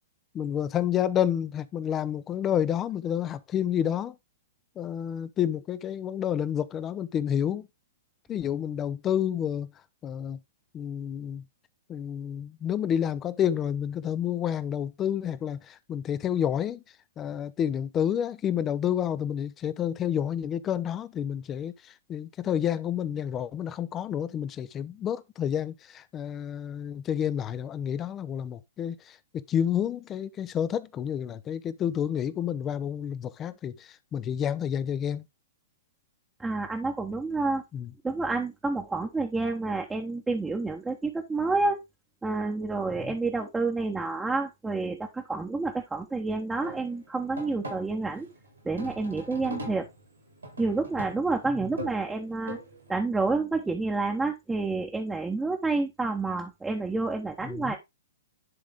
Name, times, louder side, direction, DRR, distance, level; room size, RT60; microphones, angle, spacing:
voice 1, 0.3-4.2 4.8-7.7 8.3-9.7 10.0-10.4 10.7-11.4 11.9-16.8 17.2-35.3 37.7-37.9 42.9-43.1 51.5-51.7 57.4-57.8, left 9 dB, 25° left, 0.6 m, -29 dB
voice 2, 36.4-37.6 38.0-41.8 42.2-48.3 48.6-49.8 50.6-52.6 52.9-57.8, right 3 dB, 10° right, 1.1 m, -29 dB
sound 1, 46.6-52.9, equal, 85° right, 4.2 m, -41 dB
11.0 x 3.7 x 3.6 m
figure-of-eight pair, 115°, 0 cm